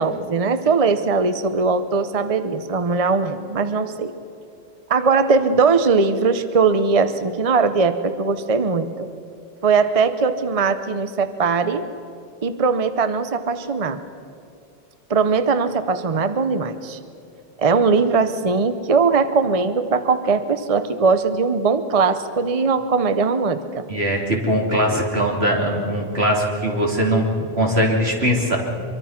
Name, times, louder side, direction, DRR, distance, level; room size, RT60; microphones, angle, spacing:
voice 1, 0.0-4.1 4.9-9.1 9.6-11.9 12.4-14.0 15.1-17.0 17.6-23.8, right 4 dB, 35° right, 10 dB, 0.9 m, -20 dB
voice 2, 23.9-28.6, equal, 80° right, -1 dB, 3.5 m, -21 dB
24.5 x 23.5 x 5.9 m, 2.5 s
omnidirectional pair, 1.0 m